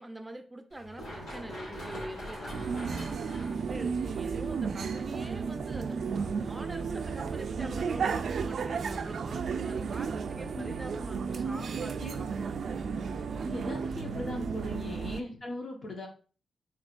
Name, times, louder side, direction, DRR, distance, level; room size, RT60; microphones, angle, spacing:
voice 1, 0.0-3.2 3.7-12.6, right 1 dB, 20° right, 6 dB, 0.6 m, -44 dB
Run, 0.7-8.2, equal, 85° left, 1.9 m, -45 dB
sound 1, 2.5-15.2, right 5 dB, 70° right, 0.3 m, -33 dB
voice 2, 13.4-16.1, left 2 dB, 55° left, 1 dB, 1.3 m, -39 dB
4.2 x 3.7 x 2.5 m, 0.37 s
supercardioid pair, 55°, 0 cm